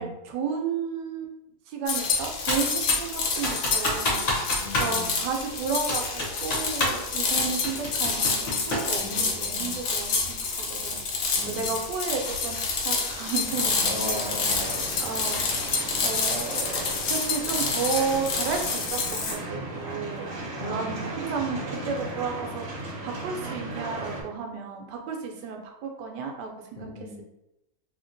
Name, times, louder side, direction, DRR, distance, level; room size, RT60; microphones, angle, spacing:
voice 1, 0.0-1.3 1.7-4.2 4.8-10.9 11.5-14.3 15.0-15.6 16.0-16.7 17.1-20.3 20.6-26.9, right 5 dB, 85° right, 2 dB, 1.2 m, -32 dB
sound 1, 1.9-19.4, left 4 dB, 90° left, 1.3 m, -28 dB
Computer keyboard, 2.5-3.1 3.4-5.0 5.2-5.3 5.9-7.1 7.4-8.9, left 1 dB, 55° left, 1.0 m, -28 dB
voice 2, 4.6-5.2 9.0-9.8 11.4-11.8 13.8-15.1 20.6-21.1 26.8-27.2, left 1 dB, 70° left, -7 dB, 0.4 m, -38 dB
sound 2, 13.5-24.2, right 2 dB, 60° right, 1.0 m, -37 dB
2.8 x 2.8 x 2.6 m, 0.88 s
omnidirectional pair, 1.8 m